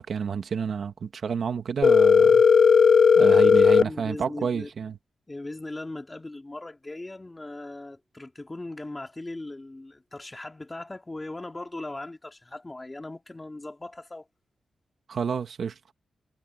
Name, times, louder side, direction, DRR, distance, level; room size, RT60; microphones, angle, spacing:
voice 1, 0.0-2.4 3.2-5.0 15.1-15.7, right 6 dB, 60° right, 1.7 m, -30 dB
Telephone, 1.8-3.8, left 6 dB, 55° left, 0.4 m, -16 dB
voice 2, 3.3-4.7 5.3-14.3, left 2 dB, 20° left, 2.8 m, -39 dB
wide cardioid pair, 115°, 0 cm